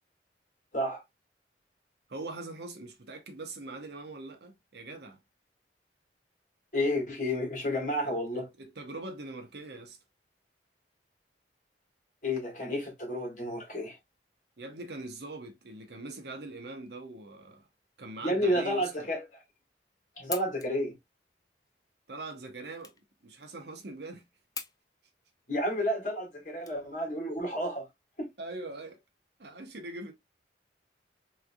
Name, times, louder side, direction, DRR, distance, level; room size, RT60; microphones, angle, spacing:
voice 1, 2.1-5.2 8.0-10.0 14.6-17.7 18.0-19.1 22.1-22.9 23.2-24.2 28.4-29.0 29.4-30.1, right 2 dB, 65° right, 0.8 m, -42 dB
voice 2, 6.7-8.5 12.2-14.0 18.2-19.2 20.2-20.9 25.5-27.9 28.2-28.3, equal, 45° left, 1.7 m, -31 dB
sound 1, 20.0-27.3, left 6 dB, 20° left, 0.4 m, -46 dB
3.7 x 3.2 x 2.2 m
head